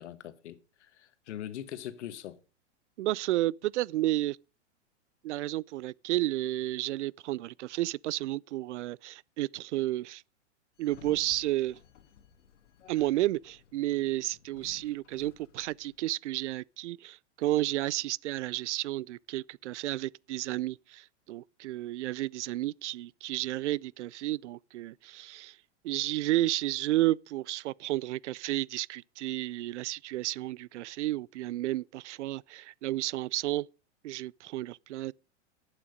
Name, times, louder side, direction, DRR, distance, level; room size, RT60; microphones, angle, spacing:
voice 1, 0.0-2.4 12.8-12.9, left 11 dB, 75° left, 1.5 m, -42 dB
voice 2, 3.0-4.4 5.2-10.2 10.8-11.8 12.9-25.5 25.8-33.7 34.0-35.1, right 16 dB, 80° right, 0.5 m, -32 dB
Sliding door, 10.8-16.0, left 8 dB, 90° left, 1.8 m, -56 dB
11.0 x 8.9 x 5.1 m
supercardioid pair, 150°, 35 cm